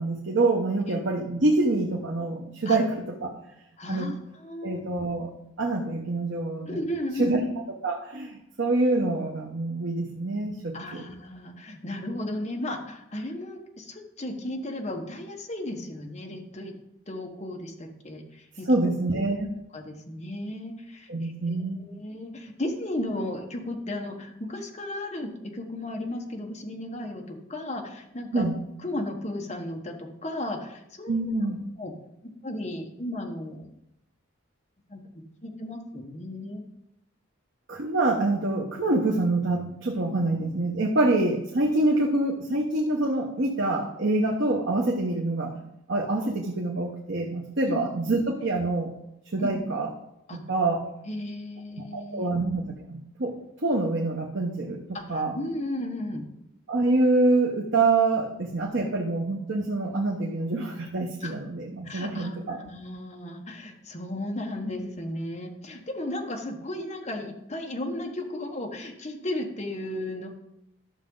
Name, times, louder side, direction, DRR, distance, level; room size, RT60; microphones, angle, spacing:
voice 1, 0.0-3.3 3.9-4.1 4.6-5.3 5.6-6.8 7.2-7.4 7.7-11.0 18.7-19.6 21.1-21.9 28.3-28.6 31.1-31.6 37.7-45.6 45.9-48.9 49.3-49.9 50.3-50.8 51.9-55.3 56.7-62.6, right 2 dB, 65° right, 0 dB, 1.1 m, -26 dB
voice 2, 3.8-4.8 6.7-7.5 10.7-16.7 17.1-18.9 19.7-28.5 28.8-31.2 31.8-31.9 32.4-33.7 34.9-36.7 47.6-47.9 49.4-49.5 50.3-50.4 51.1-52.3 54.9-56.3 61.2-61.3 61.8-70.3, left 1 dB, 35° left, 1 dB, 1.3 m, -35 dB
12.5 x 6.7 x 3.9 m, 0.81 s
head